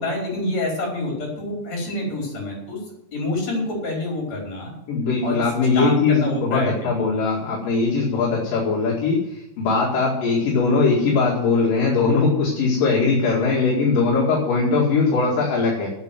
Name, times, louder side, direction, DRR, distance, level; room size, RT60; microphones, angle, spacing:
voice 1, 0.0-2.8 3.1-4.7 5.2-5.4 5.7-7.1, left 2 dB, 40° left, -2 dB, 6.1 m, -27 dB
voice 2, 4.9-15.9, left 4 dB, 60° left, -3 dB, 3.7 m, -20 dB
9.2 x 8.9 x 9.4 m, 0.85 s
omnidirectional pair, 4.7 m